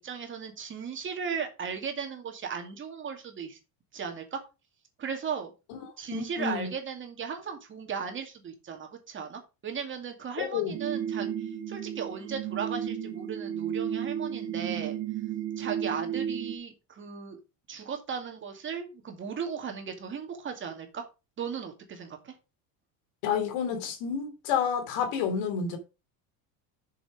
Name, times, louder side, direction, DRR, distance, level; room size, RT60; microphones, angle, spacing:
voice 1, 0.0-3.6 3.9-4.4 5.0-5.5 6.0-15.0 15.6-17.4 17.7-21.1 21.4-22.3, right 6 dB, 30° right, 2.3 m, -36 dB
voice 2, 6.1-6.7 10.4-10.7 23.2-25.8, left 7 dB, 75° left, 3.0 m, -29 dB
sound 1, 10.7-16.6, right 9 dB, 75° right, 1.8 m, -33 dB
7.5 x 6.5 x 5.0 m
cardioid pair, 150°, 40 cm